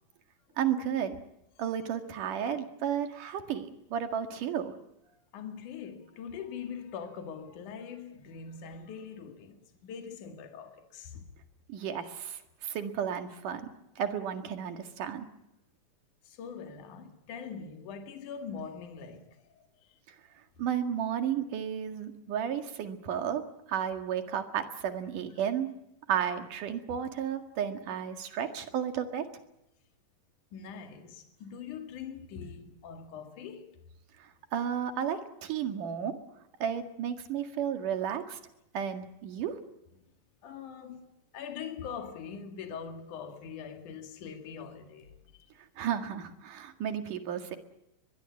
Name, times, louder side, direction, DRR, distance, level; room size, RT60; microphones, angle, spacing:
voice 1, 0.6-1.2 1.6-4.7 11.7-13.7 14.0-15.3 20.6-23.4 23.7-25.7 26.1-29.3 34.2-36.2 36.6-38.4 38.7-39.6 45.8-47.6, right 8 dB, 75° right, 3.5 m, -33 dB
voice 2, 5.3-11.3 12.0-12.1 12.6-12.8 16.3-19.7 30.5-33.7 40.4-45.5, left 6 dB, 70° left, 3.5 m, -43 dB
23.0 x 21.5 x 8.5 m
omnidirectional pair, 3.8 m